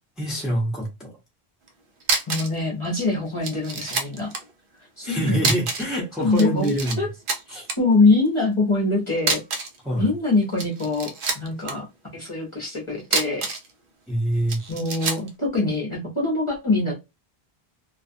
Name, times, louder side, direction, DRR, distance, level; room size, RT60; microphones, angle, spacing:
voice 1, 0.2-1.1 5.0-7.0 7.5-7.7 9.8-10.1 14.1-14.6, right 1 dB, ahead, 0.8 m, -25 dB
sound 1, 1.7-1.8 2.0-2.6 2.8-2.9 3.4-4.4 5.4-6.0 6.2-7.0 7.3-7.8 9.2-9.8 10.4-11.7 13.0-13.7 14.5-15.3, right 4 dB, 60° right, 0.7 m, -26 dB
voice 2, 2.3-4.3 4.8-5.5 6.2-6.7 7.0-7.1 7.8-9.4 10.0-11.9 12.1-13.5 14.7-16.9, left 3 dB, 30° left, 0.8 m, -23 dB
2.4 x 2.3 x 2.6 m
omnidirectional pair, 1.1 m